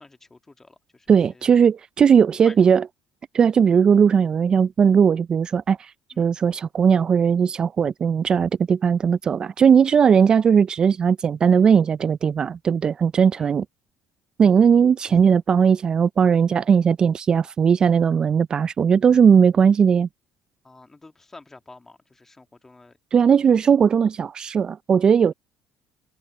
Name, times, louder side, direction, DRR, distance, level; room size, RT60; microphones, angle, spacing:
voice 1, 0.0-1.5 2.4-2.6 6.1-6.3 13.4-13.5 15.1-15.2 20.6-23.0 23.5-23.6, left 3 dB, 20° left, 2.0 m, -47 dB
voice 2, 1.1-2.9 3.3-5.9 6.2-13.7 14.4-20.1 23.1-25.3, right 7 dB, 40° right, 0.3 m, -18 dB
open air
supercardioid pair, 85°, 2 cm